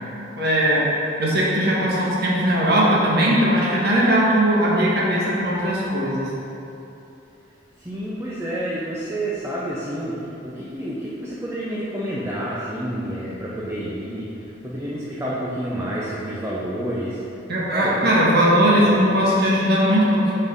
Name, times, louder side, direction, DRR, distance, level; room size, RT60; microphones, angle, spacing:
voice 1, 0.4-0.8 1.2-6.3 17.5-20.3, equal, 60° right, -5 dB, 1.5 m, -19 dB
voice 2, 7.8-17.2 17.7-19.0, right 1 dB, 15° right, -7 dB, 0.8 m, -29 dB
6.3 x 5.4 x 5.3 m, 2.8 s
head